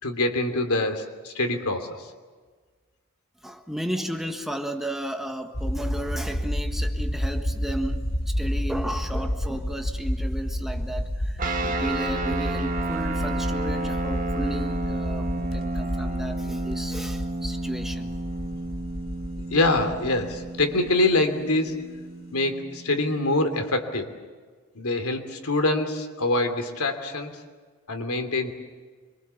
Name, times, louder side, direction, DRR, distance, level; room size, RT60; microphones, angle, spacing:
voice 1, 0.0-2.0 19.5-21.8 22.3-24.1 24.7-27.3 27.9-28.5, left 2 dB, 90° left, 3.1 m, -25 dB
voice 2, 3.4-18.1, right 1 dB, ahead, 1.4 m, -33 dB
sound 1, 5.5-21.2, equal, 65° left, 2.5 m, -30 dB
sound 2, 11.4-23.2, right 2 dB, 40° right, 1.8 m, -31 dB
26.0 x 24.0 x 7.1 m
head